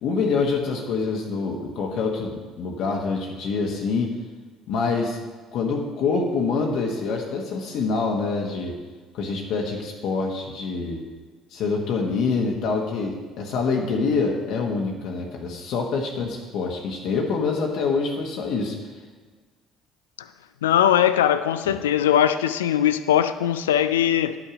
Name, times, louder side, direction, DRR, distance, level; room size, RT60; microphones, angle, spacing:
voice 1, 0.0-4.1 4.7-5.2 5.5-8.8 9.1-11.0 11.5-18.8, left 4 dB, 65° left, 0 dB, 1.1 m, -26 dB
voice 2, 20.6-24.4, left 10 dB, 85° left, 12 dB, 0.3 m, -20 dB
10.5 x 5.9 x 5.0 m, 1.4 s
hypercardioid pair, 60°, 0 cm